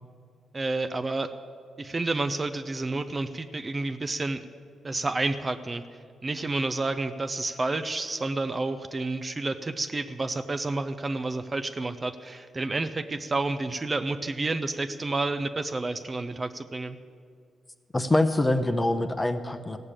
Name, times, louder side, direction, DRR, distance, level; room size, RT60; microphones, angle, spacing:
voice 1, 0.5-1.3 1.8-4.4 4.8-5.8 6.2-17.0, right 2 dB, 30° right, 10 dB, 0.5 m, -30 dB
voice 2, 17.9-19.8, left 2 dB, 20° left, 7 dB, 0.7 m, -24 dB
16.0 x 6.7 x 8.8 m, 2.2 s
cardioid pair, 95°, 0 cm